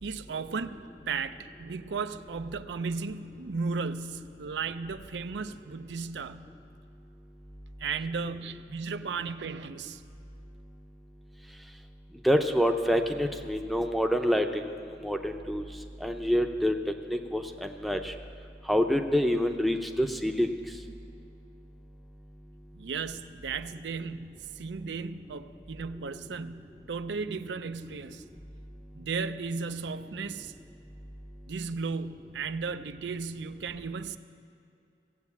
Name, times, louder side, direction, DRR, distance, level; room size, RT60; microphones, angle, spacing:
voice 1, 0.0-6.4 7.8-10.0 22.7-28.2 28.9-30.5 31.5-34.2, right 5 dB, 85° right, 0.5 m, -35 dB
voice 2, 12.2-14.6 15.0-15.6 16.0-16.7 17.1-18.1 18.7-20.5, equal, ahead, 0.6 m, -26 dB
16.0 x 8.0 x 8.4 m
head